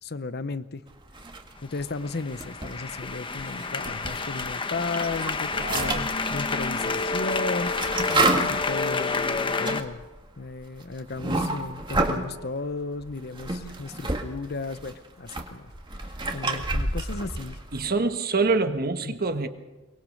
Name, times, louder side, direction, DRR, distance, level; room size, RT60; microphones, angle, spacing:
voice 1, 0.0-0.8 1.6-10.1 10.4-15.7 16.0-17.6 19.1-19.2, left 3 dB, 55° left, 13 dB, 0.8 m, -35 dB
sound 1, 1.1-1.8 2.2-4.5 4.9-12.3 13.0-14.2 14.5-17.9, right 2 dB, 25° right, 1.9 m, -30 dB
sound 2, 1.7-9.8, left 4 dB, 25° left, 1.0 m, -29 dB
voice 2, 5.5-6.1 17.7-19.5, right 3 dB, 50° right, 8 dB, 1.4 m, -26 dB
23.5 x 20.5 x 6.6 m, 1.2 s
head